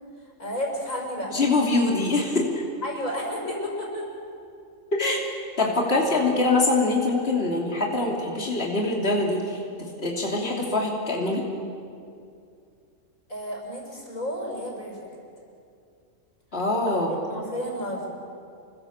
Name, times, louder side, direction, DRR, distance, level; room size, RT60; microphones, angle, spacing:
voice 1, 0.4-1.4 2.8-4.1 6.1-6.2 13.3-15.1 16.9-17.0 17.3-18.1, equal, 85° left, -1 dB, 6.6 m, -32 dB
voice 2, 1.3-2.5 4.9-5.2 5.6-11.4 16.5-17.1, left 2 dB, 50° left, -1 dB, 3.3 m, -24 dB
28.0 x 24.5 x 7.4 m, 2.5 s
omnidirectional pair, 1.4 m